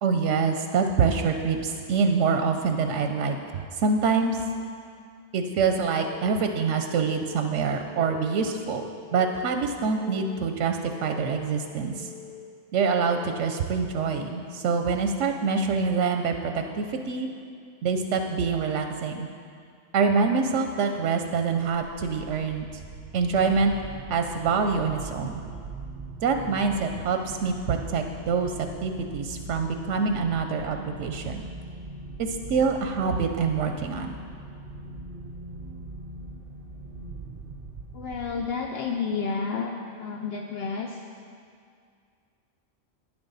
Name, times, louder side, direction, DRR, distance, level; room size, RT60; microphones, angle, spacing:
voice 1, 0.0-4.4 5.3-8.8 9.1-12.1 12.7-17.3 17.8-19.3 19.9-22.8 23.1-23.7 24.1-25.4 26.2-31.4 32.2-34.1, right 5 dB, 90° right, 5 dB, 1.0 m, -25 dB
Telephone, 5.7-6.2 6.7-7.3 7.7-8.3 8.8-9.3 9.8-10.3 10.8-11.3 11.8-12.3 12.8-13.3, left 5 dB, 35° right, 2.1 m, -47 dB
sound 1, 21.8-38.9, right 2 dB, 55° right, 0.9 m, -41 dB
voice 2, 37.9-39.7 40.0-41.0, left 5 dB, 65° left, 2 dB, 0.8 m, -30 dB
10.5 x 9.9 x 4.0 m, 2.2 s
omnidirectional pair, 1.2 m